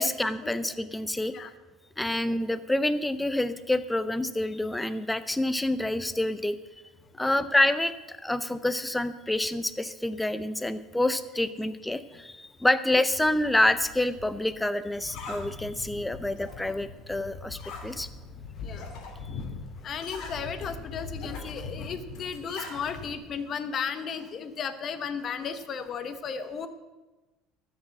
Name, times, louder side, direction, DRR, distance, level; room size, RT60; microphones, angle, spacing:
voice 1, 0.0-1.3 2.0-6.6 7.2-18.1 19.3-19.4, left 1 dB, 5° left, 13 dB, 0.6 m, -27 dB
sound 1, 13.1-23.2, left 4 dB, 65° left, 2.5 m, -41 dB
voice 2, 19.8-26.7, left 6 dB, 40° left, 11 dB, 1.0 m, -35 dB
12.5 x 6.1 x 7.7 m, 1.1 s
supercardioid pair, 115°, 0 cm